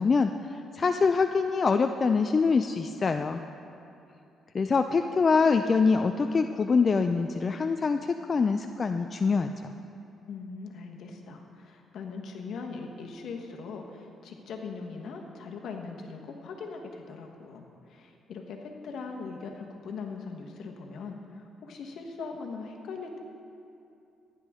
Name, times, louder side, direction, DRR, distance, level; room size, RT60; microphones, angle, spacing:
voice 1, 0.0-3.4 4.5-9.7, left 4 dB, 40° left, 7 dB, 0.4 m, -25 dB
voice 2, 10.2-23.2, left 4 dB, 70° left, 2 dB, 1.2 m, -40 dB
15.5 x 10.0 x 3.6 m, 2.7 s
cardioid pair, 90°, 0 cm